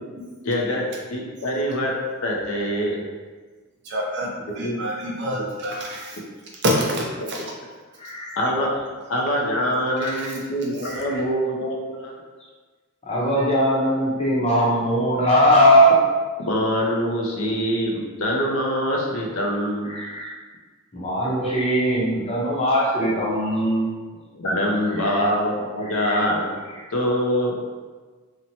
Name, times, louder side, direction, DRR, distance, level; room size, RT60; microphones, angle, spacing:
voice 1, 0.4-3.0 4.6-4.8 7.2-7.3 8.4-8.8 9.1-12.2 16.4-19.9 24.3-26.6 26.9-27.6, equal, 70° left, -1 dB, 0.5 m, -24 dB
voice 2, 3.8-6.2 6.6-7.4 10.0-10.3 10.8-10.9, equal, 55° right, -2 dB, 0.5 m, -27 dB
voice 3, 8.0-8.3 10.0-10.3 10.8-11.2 13.1-16.0 19.9-20.3 20.9-23.9 25.8-26.2, equal, 30° left, -6 dB, 0.7 m, -20 dB
2.9 x 2.1 x 2.6 m, 1.4 s
head